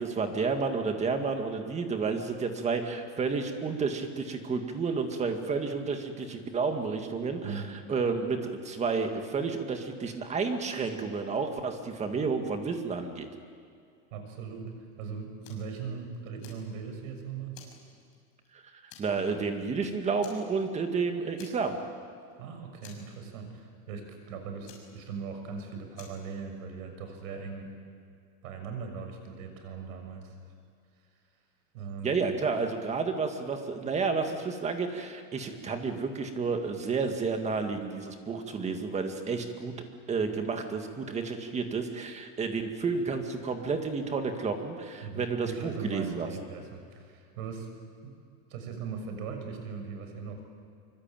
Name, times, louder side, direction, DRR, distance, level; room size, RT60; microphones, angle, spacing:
voice 1, 0.0-7.6 7.9-13.3 19.0-21.8 32.0-39.7 40.1-46.3, right 4 dB, 15° right, 6 dB, 1.9 m, -31 dB
voice 2, 14.1-17.6 22.4-27.7 28.4-30.3 31.7-32.2 45.0-47.7 48.0-48.1 48.5-50.4, right 5 dB, 80° right, 5 dB, 6.4 m, -39 dB
Fire, 15.4-15.7 16.1-17.1 17.5-18.5 18.9-19.3 19.6-19.7 20.2-20.9 21.4-21.9 22.2-22.3 22.8-23.6 24.7-25.5 25.9-26.3, left 8 dB, 45° left, 6.5 m, -52 dB
25.0 x 24.0 x 9.1 m, 2.2 s
supercardioid pair, 170°, 40 cm